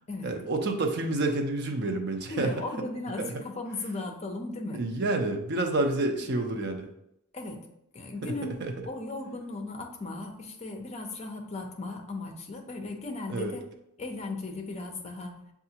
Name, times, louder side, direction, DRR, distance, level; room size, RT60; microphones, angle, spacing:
voice 1, 0.2-2.6 3.2-3.3 4.7-6.9 8.2-8.3 8.6-8.7 13.3-13.6, right 2 dB, 50° right, 3 dB, 0.6 m, -28 dB
voice 2, 2.3-4.8 7.3-7.6 7.9-8.6 8.8-13.6 14.0-15.4, left 2 dB, 30° left, 2 dB, 0.6 m, -36 dB
6.6 x 2.4 x 2.8 m, 0.80 s
head